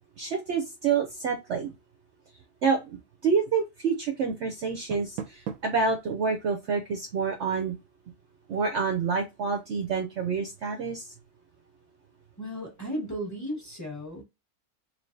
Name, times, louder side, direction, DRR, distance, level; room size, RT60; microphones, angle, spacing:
voice 1, 0.2-1.7 2.6-7.8 8.5-11.1, right 5 dB, 60° right, 0.8 m, -28 dB
Door, 4.6-5.9, right 8 dB, 85° right, 1.1 m, -38 dB
voice 2, 12.4-14.2, equal, 10° left, 1.3 m, -35 dB
3.3 x 3.2 x 2.6 m
omnidirectional pair, 1.6 m